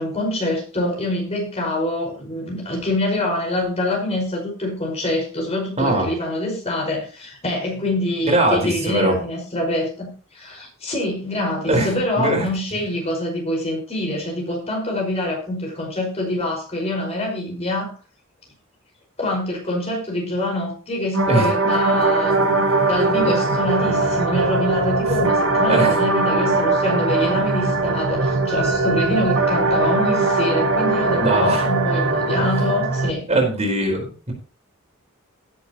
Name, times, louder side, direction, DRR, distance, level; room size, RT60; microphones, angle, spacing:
voice 1, 0.0-17.9 19.2-22.6 22.9-33.2, left 1 dB, 30° left, -1 dB, 5.3 m, -25 dB
voice 2, 5.8-6.1 8.3-9.2 11.6-12.5 21.3-21.5 25.7-25.9 31.2-31.6 32.4-32.5 33.3-34.3, right 1 dB, 30° right, 1 dB, 4.7 m, -20 dB
sound 1, 21.1-33.1, right 3 dB, 90° right, 1.9 m, -20 dB
18.0 x 8.3 x 3.0 m, 0.36 s
head